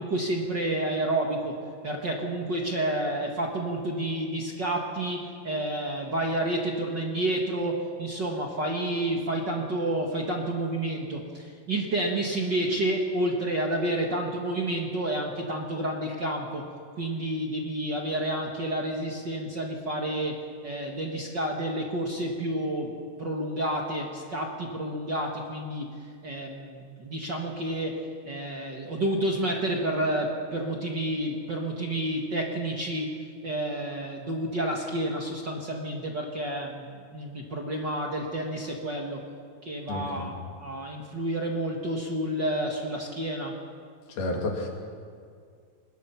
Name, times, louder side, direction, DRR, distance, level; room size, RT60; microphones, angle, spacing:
voice 1, 0.0-1.5 1.8-16.6 16.9-20.4 20.6-22.9 23.2-25.9 26.2-33.1 33.4-39.2 39.6-43.5, right 1 dB, 45° right, 0 dB, 1.6 m, -30 dB
voice 2, 39.9-40.3 44.1-44.7, left 2 dB, 85° left, 1 dB, 4.4 m, -31 dB
22.5 x 20.5 x 5.8 m, 2.2 s
omnidirectional pair, 4.2 m